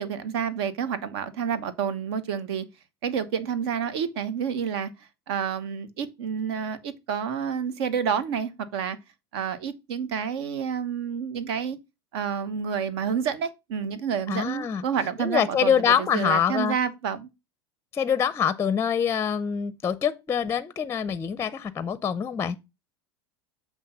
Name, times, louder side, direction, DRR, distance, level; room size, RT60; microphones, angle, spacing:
voice 1, 0.0-2.6 3.0-4.9 5.3-9.0 9.3-11.8 12.1-17.3, right 7 dB, 70° right, 1.0 m, -29 dB
voice 2, 14.3-14.8 15.2-16.8 17.9-22.6, left 8 dB, 20° left, 0.5 m, -25 dB
7.6 x 3.0 x 5.5 m
hypercardioid pair, 100°, 14 cm